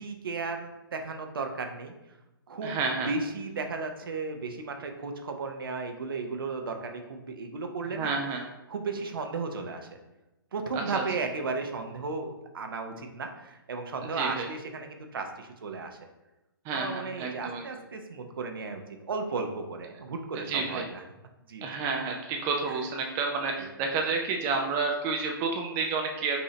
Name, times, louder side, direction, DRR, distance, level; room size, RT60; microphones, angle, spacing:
voice 1, 0.0-1.9 2.5-2.8 3.1-8.1 8.7-9.9 10.5-16.0 16.7-18.8 19.1-20.9 21.5-21.6 23.6-23.7, right 4 dB, 65° right, 5 dB, 0.7 m, -34 dB
voice 2, 2.6-3.1 7.9-8.4 10.7-11.0 14.0-14.5 16.6-17.7 20.4-20.9 21.6-26.4, right 4 dB, 25° right, 2 dB, 0.5 m, -30 dB
5.5 x 2.7 x 3.2 m, 0.99 s
figure-of-eight pair, 130°, 12 cm